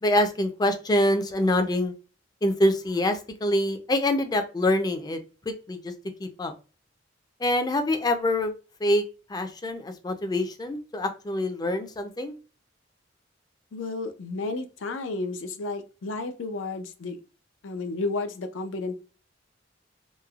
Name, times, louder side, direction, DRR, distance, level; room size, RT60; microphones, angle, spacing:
voice 1, 0.0-1.9 2.4-5.9 6.2-6.5 7.4-8.5 8.8-9.0 9.3-12.4, left 1 dB, 20° left, 7 dB, 0.4 m, -25 dB
voice 2, 13.7-17.2 17.6-19.0, left 3 dB, 80° left, 7 dB, 0.5 m, -32 dB
3.0 x 2.0 x 2.3 m, 0.34 s
head